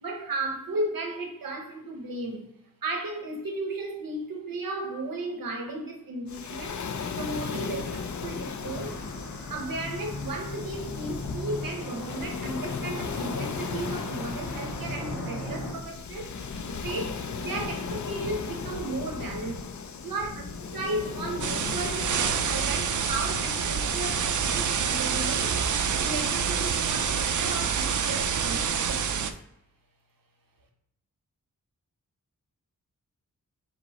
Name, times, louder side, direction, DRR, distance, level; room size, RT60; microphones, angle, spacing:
voice 1, 0.0-2.5 2.8-6.8 7.1-9.0 9.5-16.3 16.8-19.7 20.0-20.4 20.7-29.3, right 2 dB, 80° right, 1.0 m, -35 dB
Waves surf, 6.3-24.3, left 5 dB, 60° left, 0.5 m, -36 dB
sound 1, 8.6-15.7, left 1 dB, 80° left, 1.6 m, -38 dB
sound 2, 21.4-29.3, right 6 dB, 60° right, 0.5 m, -27 dB
5.2 x 2.0 x 4.0 m
wide cardioid pair, 80°, 34 cm